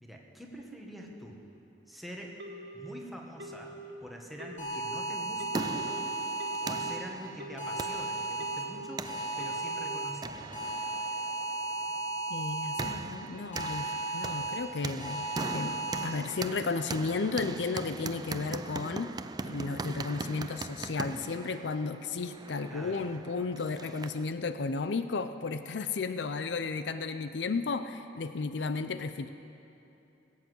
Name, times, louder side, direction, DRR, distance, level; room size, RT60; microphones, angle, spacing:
voice 1, 0.0-1.4 1.9-2.3 2.7-3.7 4.0-5.7 6.6-9.0 9.4-10.5 22.7-23.0, equal, ahead, -1 dB, 1.6 m, -45 dB
Telephone, 2.4-2.9 3.4-3.9 4.4-4.9 5.4-5.9 6.4-6.9 7.4-7.9 8.4-8.9 9.4-9.9, right 1 dB, 70° right, 1.7 m, -45 dB
sound 1, 4.6-7.0 7.6-8.6 9.0-10.1 10.5-12.9 13.5-14.6 15.0-16.0, right 2 dB, 45° left, 3.1 m, -35 dB
sound 2, 5.1-24.3, right 3 dB, 25° right, 0.4 m, -41 dB
voice 2, 12.3-19.1 19.4-29.3, left 4 dB, 75° left, 10 dB, 0.5 m, -34 dB
19.5 x 8.2 x 8.0 m, 2.9 s
head